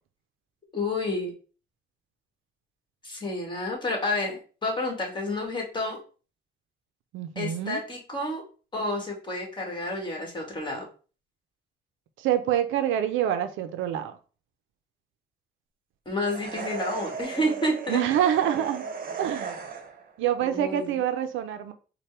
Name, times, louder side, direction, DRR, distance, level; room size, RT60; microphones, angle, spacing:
voice 1, 0.7-1.3 3.0-6.0 7.3-8.4 8.7-10.8 16.0-18.0 20.4-21.0, left 1 dB, 25° left, 1.5 m, -30 dB
voice 2, 7.1-7.8 12.2-14.1 17.9-18.9 19.2-19.5 20.2-21.7, right 10 dB, 90° right, 0.5 m, -26 dB
sound 1, 16.2-20.1, right 5 dB, 45° right, 0.7 m, -36 dB
4.2 x 2.2 x 3.3 m
cardioid pair, 90°, 20 cm